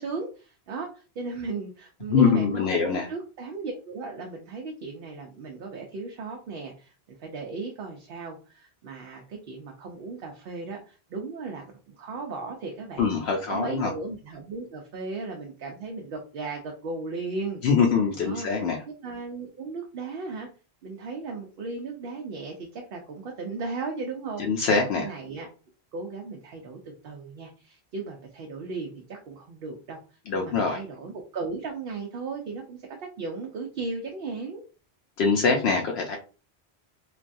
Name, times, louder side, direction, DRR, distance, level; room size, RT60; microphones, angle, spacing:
voice 1, 0.0-6.9 7.2-17.6 18.2-18.5 18.9-20.5 20.8-24.7 25.0-25.5 25.9-30.0 30.3-32.8 33.2-34.6, right 4 dB, 70° right, 1 dB, 0.7 m, -36 dB
voice 2, 2.1-3.1 13.0-13.9 17.6-18.8 24.4-25.1 30.3-30.8 35.2-36.2, left 5 dB, 80° left, 1 dB, 0.8 m, -23 dB
3.3 x 2.2 x 2.5 m, 0.36 s
omnidirectional pair, 1.1 m